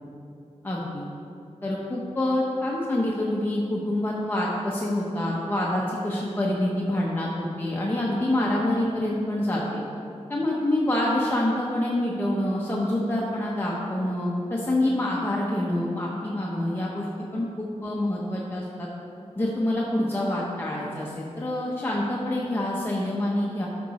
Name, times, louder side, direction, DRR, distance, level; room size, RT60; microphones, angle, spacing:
voice 1, 0.6-1.1 1.6-9.8 10.3-17.1 17.3-18.9 19.4-23.7, left 1 dB, 20° left, -4 dB, 0.8 m, -26 dB
12.5 x 5.2 x 4.1 m, 2.6 s
wide cardioid pair, 140°, 12 cm